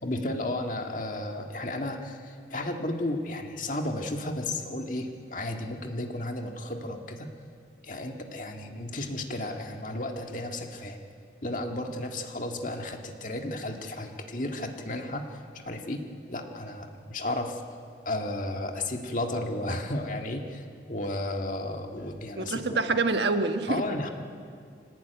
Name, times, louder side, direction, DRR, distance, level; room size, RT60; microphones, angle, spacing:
voice 1, 0.0-7.3 7.8-11.0 11.4-15.4 15.6-16.0 16.3-17.6 18.1-22.8 23.7-24.1, left 1 dB, 45° left, 3 dB, 1.9 m, -33 dB
voice 2, 22.4-23.8, right 3 dB, 70° right, 7 dB, 1.4 m, -26 dB
23.5 x 19.0 x 9.3 m, 2.3 s
head